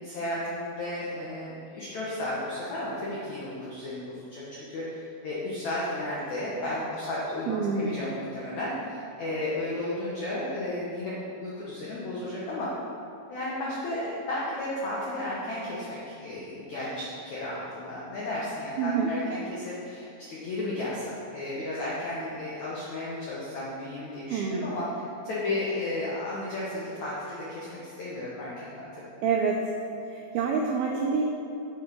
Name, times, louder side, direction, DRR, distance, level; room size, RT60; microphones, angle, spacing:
voice 1, 0.0-12.7 13.3-24.9 25.2-29.0, left 1 dB, 90° left, -7 dB, 1.6 m, -33 dB
voice 2, 7.5-8.0 18.8-19.2 24.3-24.7 29.2-29.7 30.1-31.2, right 5 dB, 90° right, 0 dB, 2.1 m, -27 dB
7.4 x 7.2 x 6.1 m, 2.7 s
omnidirectional pair, 5.3 m